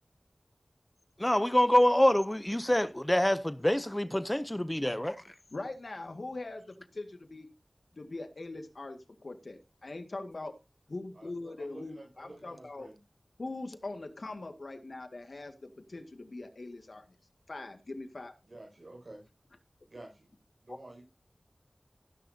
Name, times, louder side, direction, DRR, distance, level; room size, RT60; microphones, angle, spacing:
voice 1, 1.2-5.1, left 1 dB, 15° left, 0.6 m, -26 dB
voice 2, 5.5-7.5 7.9-10.5 10.9-12.9 13.4-17.1 17.5-18.3 20.7-20.8, left 2 dB, 75° left, 1.9 m, -42 dB
voice 3, 11.1-13.0 18.5-19.3 19.9-20.3 20.6-21.0, right 2 dB, 70° right, 5.9 m, -50 dB
15.5 x 10.0 x 2.8 m
wide cardioid pair, 65°, 0 cm